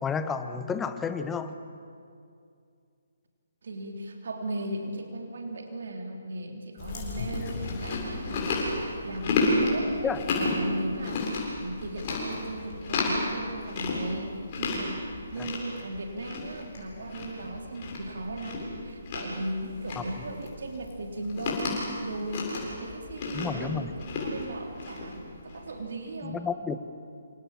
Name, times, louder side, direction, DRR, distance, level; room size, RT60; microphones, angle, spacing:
voice 1, 0.0-1.6 10.0-10.2 15.4-15.5 20.0-20.1 23.3-23.9 26.2-26.8, left 6 dB, 10° left, 10 dB, 1.2 m, -31 dB
voice 2, 3.6-9.9 10.3-21.7 22.0-26.4, right 1 dB, 60° right, 2 dB, 3.4 m, -37 dB
Chewing mastication, 6.8-25.7, left 2 dB, 35° left, 7.7 m, -32 dB
28.0 x 27.0 x 7.5 m, 2.4 s
figure-of-eight pair, 140°, 0 cm